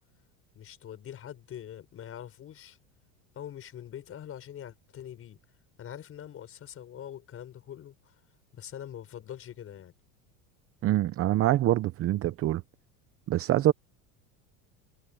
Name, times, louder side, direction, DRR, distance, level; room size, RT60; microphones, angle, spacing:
voice 1, 0.5-2.8 3.3-5.4 5.8-8.2 8.5-9.9, left 10 dB, 35° left, 5.6 m, -43 dB
voice 2, 10.8-12.6 13.3-13.7, right 14 dB, 35° right, 0.8 m, -25 dB
supercardioid pair, 130°, 38 cm